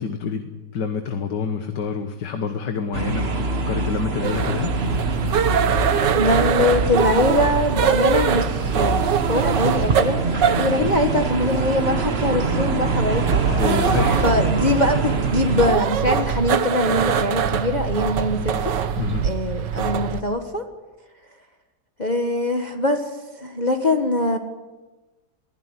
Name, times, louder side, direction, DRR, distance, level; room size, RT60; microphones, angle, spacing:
voice 1, 0.0-4.7 13.4-14.4 18.9-19.3, left 6 dB, 70° left, 7 dB, 1.9 m, -27 dB
sound 1, 2.9-15.7, right 3 dB, 35° right, 1.6 m, -25 dB
sound 2, 4.2-20.2, right 8 dB, 75° right, 1.7 m, -23 dB
voice 2, 6.1-13.4 14.2-18.7 19.2-20.6 22.0-24.4, left 2 dB, 25° left, 4 dB, 1.4 m, -23 dB
22.0 x 15.5 x 9.8 m, 1.2 s
omnidirectional pair, 2.0 m